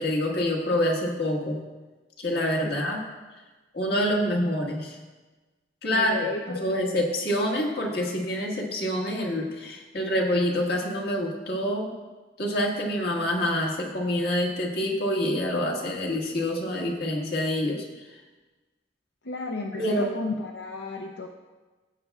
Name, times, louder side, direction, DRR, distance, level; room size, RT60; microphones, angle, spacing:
voice 1, 0.0-1.6 2.2-3.0 3.7-5.0 5.8-6.1 6.5-11.9 12.4-17.8 19.8-20.1, left 1 dB, 60° left, 0 dB, 1.7 m, -26 dB
voice 2, 5.9-6.6 19.2-21.3, left 3 dB, 80° left, 1 dB, 0.7 m, -33 dB
16.0 x 8.2 x 2.4 m, 1.2 s
head